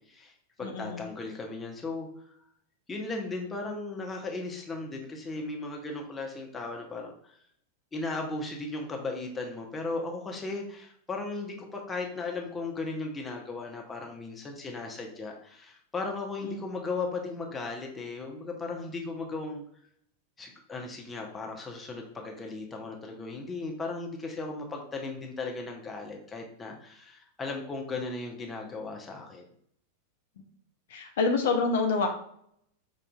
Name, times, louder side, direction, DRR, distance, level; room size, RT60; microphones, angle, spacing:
voice 1, 0.0-2.3 2.9-7.3 7.9-19.6 20.4-29.4, left 3 dB, 15° left, 1 dB, 0.8 m, -36 dB
voice 2, 0.6-1.0 16.4-16.6 30.9-32.1, left 4 dB, 60° left, 3 dB, 0.6 m, -27 dB
5.6 x 2.6 x 2.3 m, 0.66 s
figure-of-eight pair, 90°, 0 cm